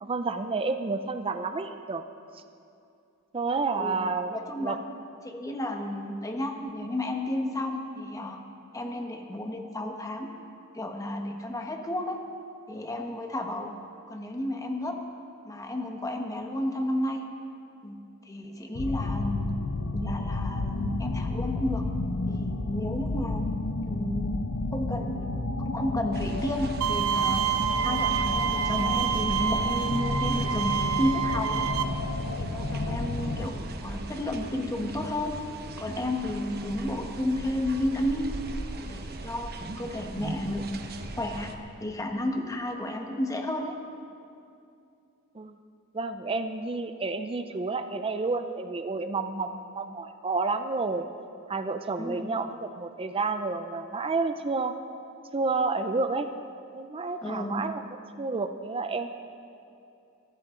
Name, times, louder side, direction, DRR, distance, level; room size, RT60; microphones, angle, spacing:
voice 1, 0.0-2.0 2.3-2.4 3.3-4.8 45.3-45.6 45.9-51.1 51.5-54.7 55.3-56.3 56.7-57.8 58.2-59.1, right 3 dB, 25° right, 8 dB, 0.5 m, -30 dB
voice 2, 4.3-4.8 5.2-8.4 8.7-10.3 10.7-12.2 12.7-13.7 14.1-15.0 15.4-17.3 17.8-18.0 18.2-19.5 19.9-21.8 22.3-23.5 23.9-24.4 24.7-25.3 25.6-27.5 27.8-31.7 32.3-35.3 35.8-38.3 38.9-40.8 41.2-41.5 41.8-43.8 52.0-52.3 57.2-57.6, left 1 dB, 15° left, 3 dB, 1.2 m, -32 dB
sound 1, 18.7-33.5, left 2 dB, 65° left, 0.7 m, -31 dB
sound 2, 26.1-41.6, right 2 dB, 45° right, 1.0 m, -39 dB
Bowed string instrument, 26.8-31.8, right 9 dB, 80° right, 0.8 m, -28 dB
22.0 x 13.5 x 3.8 m, 2.6 s
head